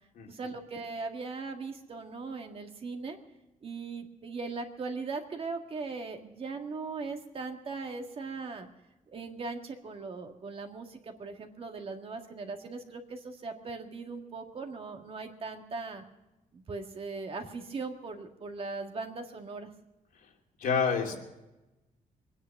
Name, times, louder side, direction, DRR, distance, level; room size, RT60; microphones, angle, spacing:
voice 1, 0.3-3.2 3.6-8.7 9.1-16.0 16.5-19.7, right 4 dB, 40° right, 4 dB, 1.8 m, -39 dB
voice 2, 20.6-21.2, left 6 dB, 85° left, 1 dB, 2.9 m, -28 dB
23.5 x 9.9 x 5.9 m, 1.0 s
wide cardioid pair, 165°, 14 cm